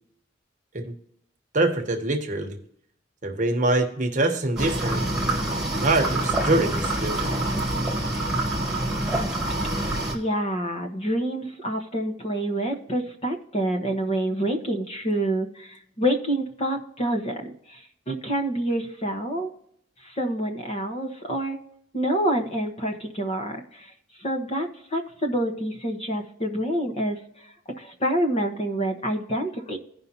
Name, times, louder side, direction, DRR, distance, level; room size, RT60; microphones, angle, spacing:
voice 1, 1.5-2.6 3.2-5.1 5.8-7.1, right 2 dB, 40° right, 4 dB, 1.1 m, -24 dB
sound 1, 4.6-10.1, right 1 dB, 5° right, 1.7 m, -26 dB
voice 2, 10.1-19.5 20.0-21.6 21.9-23.9 24.2-29.8, right 1 dB, 30° left, 3 dB, 1.2 m, -27 dB
16.0 x 5.4 x 2.9 m, 0.72 s
head